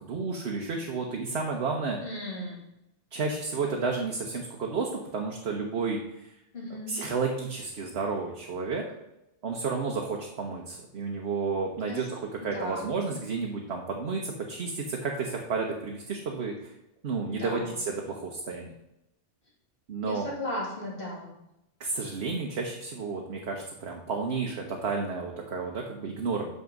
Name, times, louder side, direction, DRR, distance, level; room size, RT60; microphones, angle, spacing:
voice 1, 0.0-2.0 3.1-6.0 6.9-8.8 9.4-16.7 17.0-18.7 19.9-20.3 21.8-26.5, right 4 dB, 60° right, 1 dB, 1.2 m, -31 dB
voice 2, 2.0-2.6 6.5-7.0 11.9-12.1 12.4-12.8 17.3-17.7 20.1-21.3, left 1 dB, 50° left, -4 dB, 2.6 m, -36 dB
6.7 x 5.9 x 5.2 m, 0.88 s
omnidirectional pair, 1.2 m